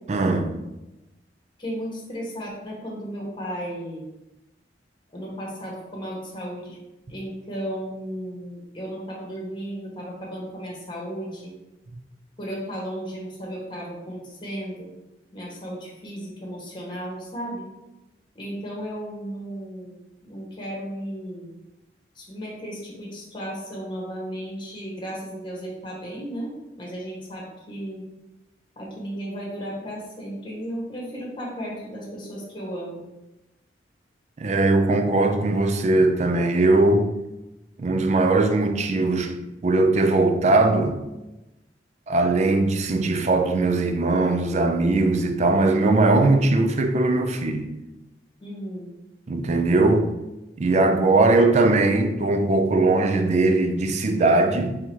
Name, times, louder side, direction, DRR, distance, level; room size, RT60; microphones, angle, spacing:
voice 1, 0.1-0.5 34.4-37.1 37.8-39.3 39.6-41.0 42.1-47.7 49.3-50.1 50.6-54.8, right 2 dB, 40° right, 0.4 m, -20 dB
voice 2, 1.6-4.0 5.1-6.8 7.1-11.5 12.4-14.9 15.3-17.6 18.3-21.5 22.1-26.5 26.8-28.0 28.8-33.0 48.4-48.9, equal, 25° left, 1.2 m, -34 dB
3.6 x 2.8 x 4.5 m
head